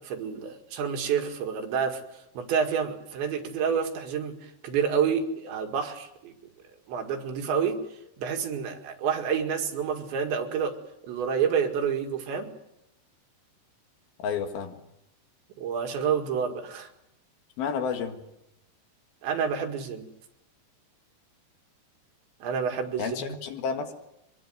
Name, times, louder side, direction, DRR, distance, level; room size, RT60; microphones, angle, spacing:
voice 1, 0.0-2.0 2.4-6.3 6.9-7.8 8.2-12.5 15.6-16.9 19.2-20.1 22.4-23.4, right 7 dB, 85° right, 5 dB, 4.4 m, -29 dB
voice 2, 14.2-14.7 17.6-18.2 23.0-23.9, left 6 dB, 65° left, 6 dB, 3.4 m, -31 dB
25.0 x 21.5 x 7.9 m, 0.84 s
omnidirectional pair, 5.0 m